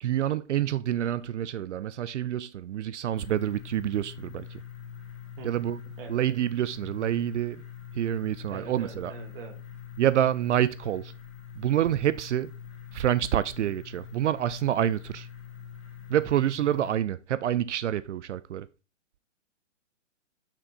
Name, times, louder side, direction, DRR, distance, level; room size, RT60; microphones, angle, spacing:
voice 1, 0.0-4.6 5.4-5.8 6.1-7.6 7.9-9.1 10.0-11.1 11.6-12.5 12.9-15.3 16.1-18.7, right 11 dB, 65° right, 0.5 m, -27 dB
sound 1, 3.1-16.9, left 8 dB, 15° left, 2.0 m, -44 dB
voice 2, 6.0-6.3 8.5-9.6, right 7 dB, 45° right, 1.4 m, -43 dB
5.9 x 4.3 x 4.2 m
hypercardioid pair, 145°, 38 cm